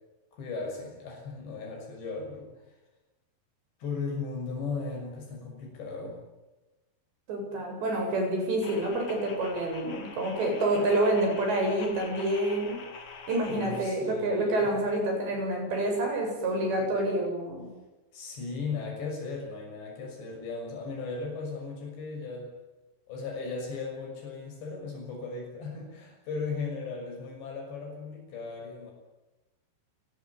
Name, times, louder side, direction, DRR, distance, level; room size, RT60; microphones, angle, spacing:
voice 1, 0.3-2.6 3.8-6.2 7.9-8.0 13.4-14.7 18.1-22.5 23.1-28.9, left 4 dB, 85° left, 1 dB, 8.5 m, -37 dB
voice 2, 7.3-12.8 13.3-17.7, right 1 dB, 90° right, 2 dB, 10.5 m, -28 dB
sound 1, 8.6-13.8, left 5 dB, 40° left, 3.8 m, -45 dB
29.0 x 19.0 x 9.7 m, 1.1 s
omnidirectional pair, 4.9 m